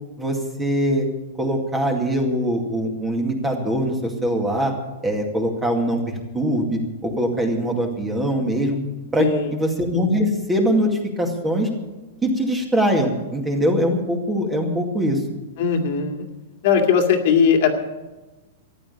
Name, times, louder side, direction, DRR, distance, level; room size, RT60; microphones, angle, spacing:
voice 1, 0.2-1.1 1.4-4.7 5.0-6.0 6.3-8.8 9.1-10.9 11.2-11.7 12.2-15.2, equal, 10° right, 2 dB, 2.2 m, -22 dB
voice 2, 9.2-9.5 15.6-16.3 16.6-17.7, left 7 dB, 50° left, 4 dB, 2.2 m, -18 dB
14.0 x 10.5 x 8.2 m, 1.1 s
supercardioid pair, 160°, 0 cm